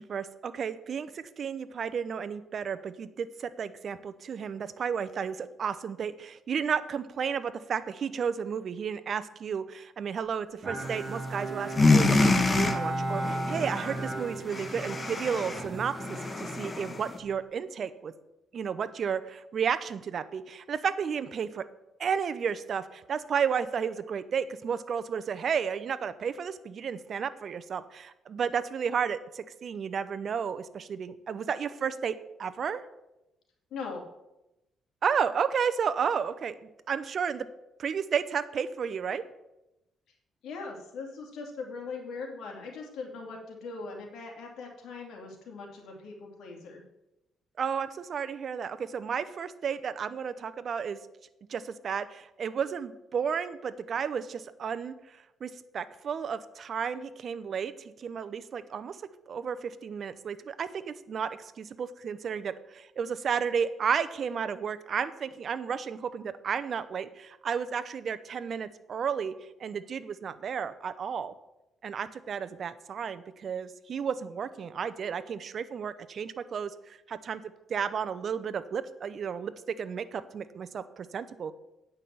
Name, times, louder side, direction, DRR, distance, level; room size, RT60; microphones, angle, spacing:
voice 1, 0.0-18.1 18.5-21.6 22.0-32.8 35.0-36.6 36.9-37.5 37.8-39.2 47.6-51.0 51.5-57.7 58.0-59.0 59.3-69.3 69.6-71.3 71.8-77.4 77.7-81.5, right 7 dB, 55° right, 14 dB, 0.7 m, -32 dB
Bowed string instrument, 10.6-17.3, right 2 dB, 30° right, 2.3 m, -36 dB
sound 1, 10.8-11.3 11.6-17.2, left 3 dB, 30° left, 1.2 m, -27 dB
voice 2, 33.7-34.0 40.4-46.8, left 4 dB, 75° left, 0 dB, 2.7 m, -40 dB
9.0 x 5.6 x 7.6 m, 0.92 s
cardioid pair, 90°, 0 cm